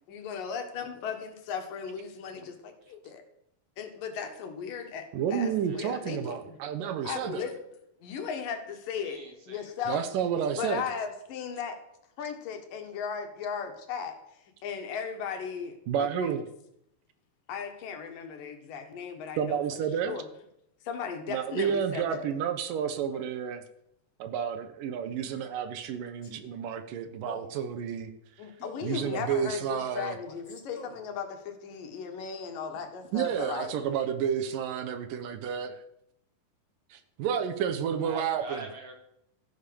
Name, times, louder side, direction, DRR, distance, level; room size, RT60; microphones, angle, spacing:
voice 1, 0.1-3.2 3.8-6.6 7.0-7.5 8.0-9.2 9.5-10.0 10.6-11.8 12.2-16.3 17.5-20.3 20.8-22.2 23.1-23.2 28.4-33.8, left 6 dB, 70° left, 6 dB, 3.2 m, -37 dB
voice 2, 5.1-7.4 9.9-10.8 15.9-16.4 19.4-20.2 21.3-23.6 24.2-28.1 28.8-30.2 33.1-35.7 36.9-38.6, right 8 dB, 75° right, 10 dB, 2.6 m, -30 dB
voice 3, 9.0-9.8 38.0-38.9, right 2 dB, 40° right, 3 dB, 3.4 m, -44 dB
Male speech man speaking, 25.2-25.5 26.2-26.5 27.2-27.6 28.6-28.9 30.2-31.0, left 1 dB, 25° left, 2.5 m, -48 dB
14.0 x 10.0 x 6.9 m, 0.76 s
omnidirectional pair, 4.0 m